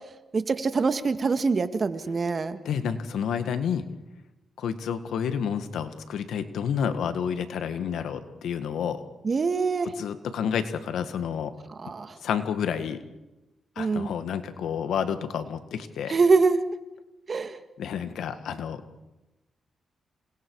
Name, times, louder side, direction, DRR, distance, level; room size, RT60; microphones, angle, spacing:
voice 1, 0.3-2.6 9.2-9.9 11.8-12.1 13.8-14.1 16.1-16.6 17.3-17.6, right 4 dB, 45° right, 9 dB, 1.9 m, -24 dB
voice 2, 2.6-3.8 4.6-9.0 10.0-11.5 12.2-13.0 13.7-16.1 17.8-18.8, left 7 dB, 85° left, 9 dB, 1.7 m, -29 dB
29.5 x 27.5 x 4.8 m, 1.0 s
cardioid pair, 60°, 0 cm